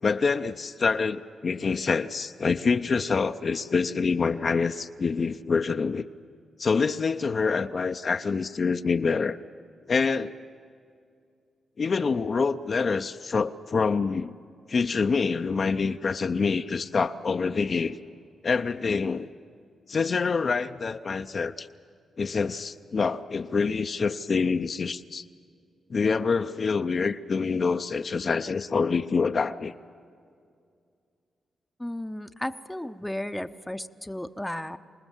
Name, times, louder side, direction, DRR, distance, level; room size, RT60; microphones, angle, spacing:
voice 1, 0.0-6.1 6.6-9.4 9.9-10.3 11.8-14.3 14.7-18.0 18.4-19.3 19.9-21.7 22.2-25.2 25.9-29.7, left 5 dB, 50° left, 8 dB, 0.6 m, -26 dB
voice 2, 31.8-34.8, left 1 dB, 10° left, 10 dB, 0.7 m, -34 dB
26.5 x 19.5 x 7.3 m, 2.3 s
cardioid pair, 60°, 0 cm